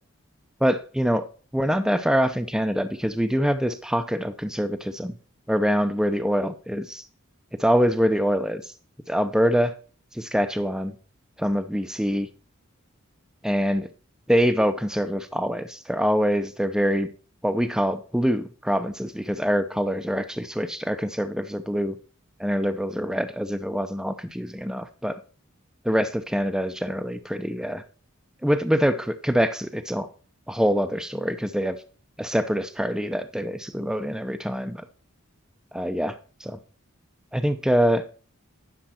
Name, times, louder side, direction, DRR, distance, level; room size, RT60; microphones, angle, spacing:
voice 1, 0.6-1.2 1.5-5.1 5.5-7.0 7.6-8.7 9.1-9.7 10.1-10.9 11.4-12.3 13.4-13.9 14.3-17.1 17.4-22.0 22.4-25.2 25.8-27.8 28.4-30.1 30.5-31.8 32.2-34.8 35.7-36.6 37.3-38.0, equal, 5° right, 10 dB, 0.6 m, -24 dB
10.0 x 6.7 x 4.3 m, 0.38 s
head